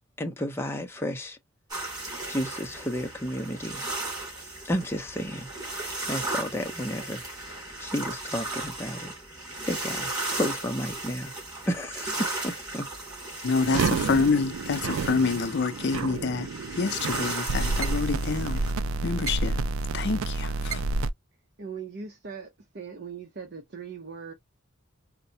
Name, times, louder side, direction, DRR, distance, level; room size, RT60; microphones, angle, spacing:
voice 1, 0.2-1.4 2.3-3.8 4.6-7.2 7.8-9.1 9.7-11.3 11.7-12.2 12.4-12.8, equal, 10° left, 0.6 m, -32 dB
sound 1, 1.7-18.7, right 2 dB, 20° right, 2.4 m, -36 dB
voice 2, 13.4-16.5 16.7-18.6 19.0-19.6 19.9-20.8, left 4 dB, 55° left, 0.5 m, -27 dB
sound 2, 13.6-21.1, right 3 dB, 80° right, 0.4 m, -29 dB
voice 3, 21.6-24.3, right 6 dB, 55° right, 0.7 m, -40 dB
4.1 x 2.2 x 2.7 m
head